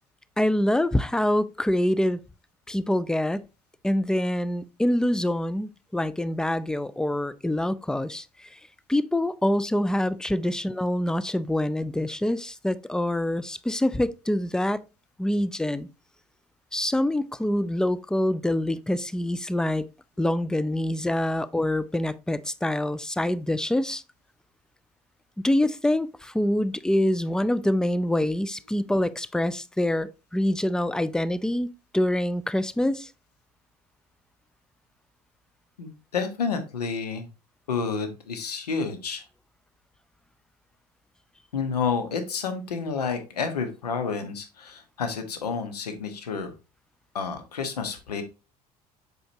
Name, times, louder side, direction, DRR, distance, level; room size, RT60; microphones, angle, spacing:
voice 1, 0.4-2.2 2.7-3.5 3.8-8.6 8.9-14.9 15.2-15.9 16.7-19.9 20.2-24.0 25.4-33.1, left 1 dB, 5° left, 0.3 m, -25 dB
voice 2, 35.8-37.3 37.7-39.2 41.5-46.5 47.1-48.2, left 5 dB, 80° left, 1.1 m, -30 dB
7.7 x 4.8 x 2.7 m
figure-of-eight pair, 60°, 20 cm